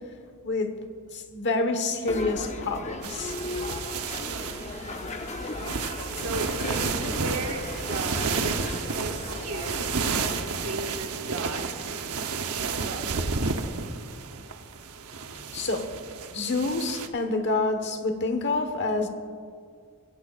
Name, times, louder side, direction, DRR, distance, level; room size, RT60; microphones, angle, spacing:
voice 1, 1.1-3.3 15.5-15.9 16.3-19.1, left 3 dB, 55° left, 7 dB, 1.2 m, -27 dB
sound 1, 2.1-10.6, left 2 dB, 30° left, 0.9 m, -36 dB
sound 2, 3.0-17.1, right 4 dB, 90° right, 0.9 m, -31 dB
voice 2, 6.1-6.5 7.0-8.4 8.9-12.0 12.4-13.1, right 2 dB, 70° right, 2 dB, 1.7 m, -37 dB
22.0 x 16.0 x 2.5 m, 2.1 s
head